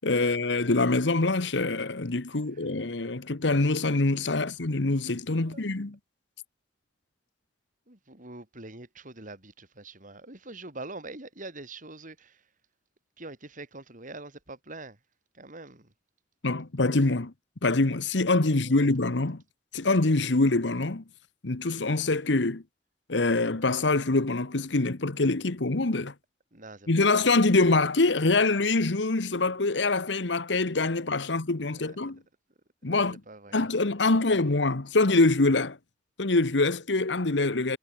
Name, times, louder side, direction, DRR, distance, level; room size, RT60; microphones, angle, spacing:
voice 1, 0.0-6.0 16.4-17.3 17.6-19.4 19.7-21.0 21.4-22.6 23.1-26.1 26.9-32.2 32.8-33.2 33.5-35.8 36.2-37.8, left 3 dB, 80° left, 1.3 m, -24 dB
voice 2, 7.9-12.4 13.2-15.0 15.3-15.9 18.7-18.9 26.5-27.3 31.3-31.4 31.8-31.9 32.8-33.6 34.1-34.3, right 2 dB, 45° right, 5.6 m, -44 dB
head